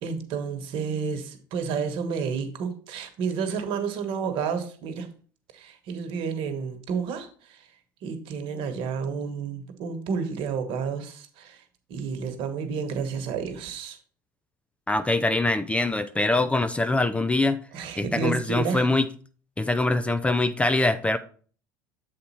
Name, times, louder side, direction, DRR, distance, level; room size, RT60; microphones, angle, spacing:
voice 1, 0.0-5.1 5.5-7.7 8.0-11.6 11.9-14.0 17.7-18.9, right 6 dB, 60° right, 1.2 m, -30 dB
voice 2, 14.9-17.6 18.0-19.1 19.6-21.2, left 2 dB, 10° left, 0.5 m, -23 dB
7.5 x 4.2 x 4.2 m
hypercardioid pair, 85°, 10 cm